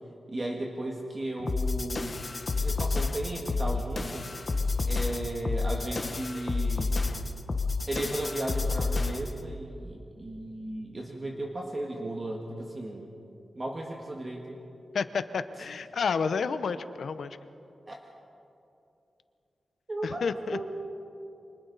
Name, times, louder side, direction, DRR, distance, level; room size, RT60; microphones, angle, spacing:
voice 1, 0.3-2.2 2.6-4.4 4.9-7.0 7.9-13.1 13.5-14.6 15.6-15.7 17.9-18.0 19.9-20.7, right 1 dB, 25° right, 0 dB, 1.6 m, -35 dB
sound 1, 1.5-9.4, left 3 dB, 35° left, 1.0 m, -30 dB
voice 2, 14.9-17.4 20.0-20.7, left 5 dB, 70° left, 12 dB, 0.8 m, -30 dB
29.5 x 25.5 x 4.0 m, 2.8 s
wide cardioid pair, 160°, 0 cm